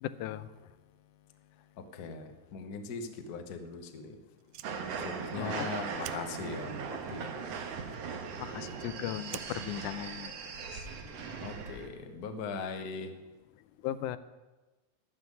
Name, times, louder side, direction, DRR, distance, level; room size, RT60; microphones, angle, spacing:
voice 1, 0.0-0.5 5.4-5.7 8.4-10.3 10.7-10.8 13.8-14.2, left 12 dB, 85° left, 14 dB, 2.1 m, -37 dB
voice 2, 1.8-4.2 5.0-7.6 11.4-13.2, left 4 dB, 70° left, 7 dB, 0.9 m, -40 dB
Fire, 4.3-11.2, right 13 dB, 90° right, 1.4 m, -52 dB
sound 1, 4.6-11.9, right 6 dB, 60° right, 2.1 m, -39 dB
12.5 x 7.7 x 9.7 m, 1.2 s
omnidirectional pair, 3.6 m